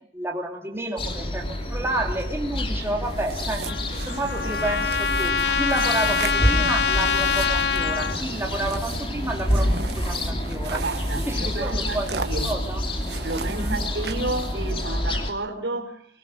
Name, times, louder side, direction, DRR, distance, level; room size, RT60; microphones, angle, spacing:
voice 1, 0.1-10.8 11.3-12.1 12.4-12.8 13.4-13.8, right 1 dB, 15° right, 0 dB, 2.6 m, -30 dB
sound 1, 1.0-15.3, left 1 dB, 30° left, 2.8 m, -28 dB
sound 2, 3.0-14.7, right 5 dB, 70° right, 1.5 m, -38 dB
Trumpet, 3.7-8.2, left 6 dB, 70° left, 0.9 m, -24 dB
voice 2, 10.8-12.6 13.2-16.1, right 2 dB, 85° right, 4 dB, 4.1 m, -31 dB
25.0 x 17.5 x 6.3 m, 0.63 s
head